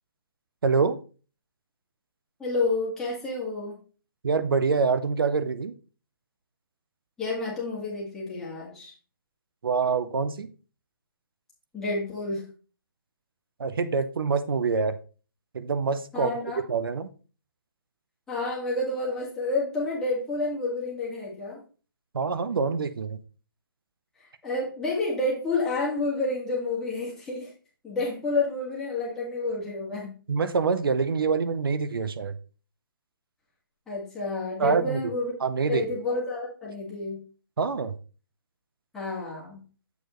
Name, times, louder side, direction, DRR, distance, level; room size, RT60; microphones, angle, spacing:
voice 1, 0.6-1.0 4.2-5.7 9.6-10.5 13.6-15.0 15.5-16.3 16.7-17.1 22.1-23.2 30.3-32.4 34.6-35.0 35.4-36.0 37.6-38.0, right 5 dB, 75° right, 0.7 m, -25 dB
voice 2, 2.4-3.8 7.2-8.9 11.7-12.4 16.1-16.6 18.3-21.6 24.4-27.5 27.8-30.1 33.9-35.3 35.7-37.2 38.9-39.6, left 3 dB, 5° left, 1.9 m, -29 dB
7.1 x 6.4 x 3.1 m
hypercardioid pair, 165°, 12 cm